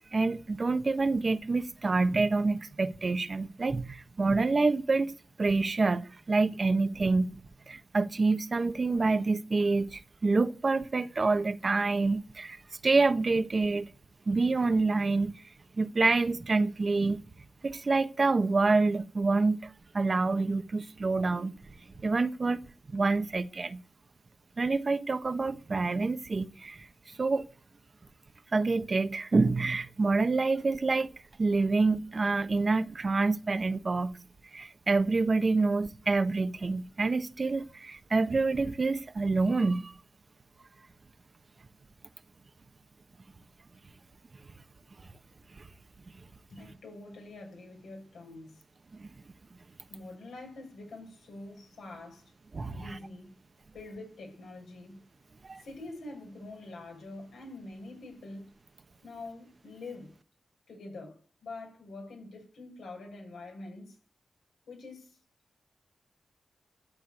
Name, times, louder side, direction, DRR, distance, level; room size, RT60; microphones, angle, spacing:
voice 1, 0.1-5.1 5.4-7.4 7.7-12.6 12.8-13.9 14.3-15.5 15.8-17.2 17.6-21.5 22.0-22.6 22.9-23.8 24.6-26.9 27.2-27.5 28.5-31.1 31.4-34.2 34.5-40.0 45.6-45.7 48.9-49.1 52.5-53.0 55.4-55.6, right 3 dB, 45° right, 1.2 m, -27 dB
voice 2, 46.5-48.6 49.9-52.3 52.7-53.3 53.7-55.0 55.6-58.5 59.0-60.1 60.7-64.0 64.7-65.2, left 2 dB, 85° left, 7.2 m, -45 dB
12.5 x 8.2 x 8.0 m
cardioid pair, 50°, 0 cm